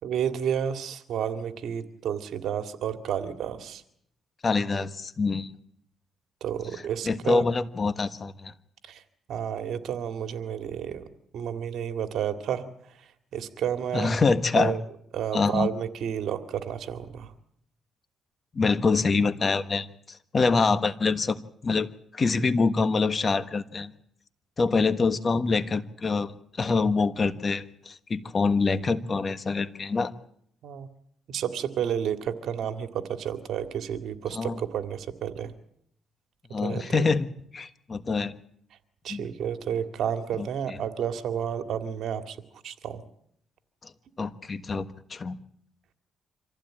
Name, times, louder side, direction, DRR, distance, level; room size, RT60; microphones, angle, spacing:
voice 1, 0.0-3.8 6.4-7.4 8.9-9.0 9.3-11.1 11.3-12.7 13.3-14.1 14.5-14.8 15.1-17.3 30.6-30.9 31.3-35.5 36.6-37.1 39.0-42.4 42.6-43.0, right 9 dB, 70° right, 8 dB, 2.2 m, -31 dB
voice 2, 4.4-5.5 7.0-8.5 13.9-14.7 15.3-15.7 18.5-23.9 24.6-30.1 34.3-34.5 36.5-37.3 37.5-38.3 39.1-39.3 40.4-40.8 44.2-45.4, left 4 dB, 35° left, 12 dB, 1.4 m, -25 dB
25.5 x 15.5 x 9.0 m, 0.69 s
cardioid pair, 90°, 0 cm